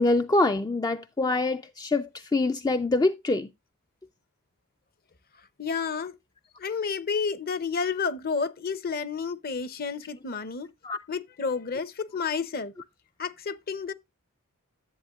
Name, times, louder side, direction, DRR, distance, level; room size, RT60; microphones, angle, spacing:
voice 1, 0.0-3.5 10.8-11.0, left 2 dB, 15° left, 0.4 m, -25 dB
voice 2, 5.6-6.1 6.6-10.7 11.1-12.7 13.2-13.9, left 5 dB, 40° left, 0.7 m, -30 dB
10.0 x 8.2 x 2.4 m
head